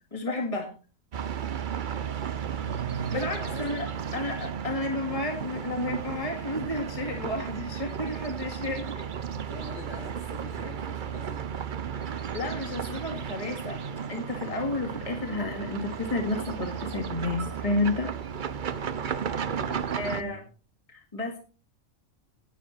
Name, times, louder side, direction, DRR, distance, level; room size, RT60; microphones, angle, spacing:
voice 1, 0.1-0.7 3.1-3.9 4.1-8.9 12.1-13.8 14.1-18.1 20.0-20.4 20.9-21.4, left 2 dB, 25° left, 2 dB, 2.2 m, -31 dB
sound 1, 1.1-20.2, right 7 dB, 45° right, 0.8 m, -34 dB
voice 2, 2.6-4.2 8.5-8.8 9.3-11.5 19.6-20.5, right 3 dB, 65° left, 1 dB, 3.9 m, -42 dB
11.5 x 9.9 x 4.4 m, 0.37 s
omnidirectional pair, 1.4 m